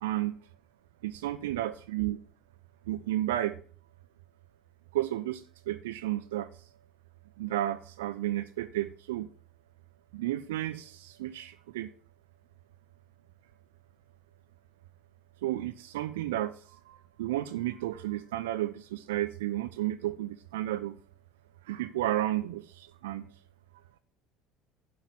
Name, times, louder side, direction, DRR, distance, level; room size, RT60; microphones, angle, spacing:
voice 1, 0.0-0.3 1.0-2.2 2.9-3.5 4.9-6.5 7.4-9.3 10.1-11.9 15.4-16.5 16.9-20.9 21.7-23.2, right 14 dB, 65° right, 10 dB, 0.7 m, -32 dB
11.0 x 5.6 x 7.1 m, 0.43 s
figure-of-eight pair, 65°, 0 cm